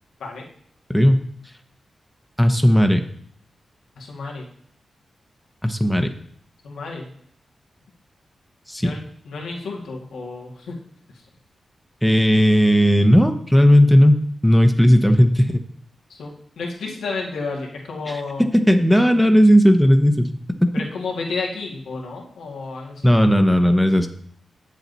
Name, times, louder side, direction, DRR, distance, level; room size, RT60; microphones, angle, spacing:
voice 1, 0.9-1.3 2.4-3.1 5.6-6.1 8.7-8.9 12.0-15.6 18.1-18.2 18.5-20.3 23.0-24.1, equal, 5° left, 6 dB, 0.9 m, -15 dB
voice 2, 4.0-4.5 6.6-7.1 8.8-10.7 16.1-18.4 20.7-23.1, left 4 dB, 90° left, -1 dB, 2.1 m, -31 dB
7.9 x 7.4 x 4.1 m, 0.63 s
cardioid pair, 50°, 0 cm